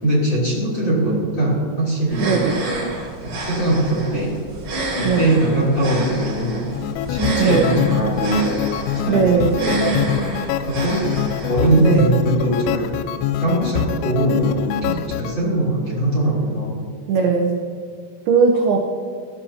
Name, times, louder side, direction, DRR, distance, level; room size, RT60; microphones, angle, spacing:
voice 1, 0.0-2.5 3.2-4.3 5.0-6.7 7.1-8.6 8.9-10.0 10.6-11.1 11.5-12.9 13.4-16.8, right 1 dB, 30° left, -6 dB, 3.0 m, -21 dB
sound 1, 2.1-12.0, right 1 dB, 40° right, 5.0 m, -29 dB
voice 2, 2.2-2.6 5.0-5.4 7.4-7.8 9.1-9.6 11.8-12.1 17.1-17.5 18.3-18.8, right 5 dB, 80° right, 1 dB, 2.2 m, -18 dB
sound 2, 6.7-15.3, left 11 dB, 85° left, 3.1 m, -25 dB
20.5 x 14.0 x 2.8 m, 2.4 s
omnidirectional pair, 5.8 m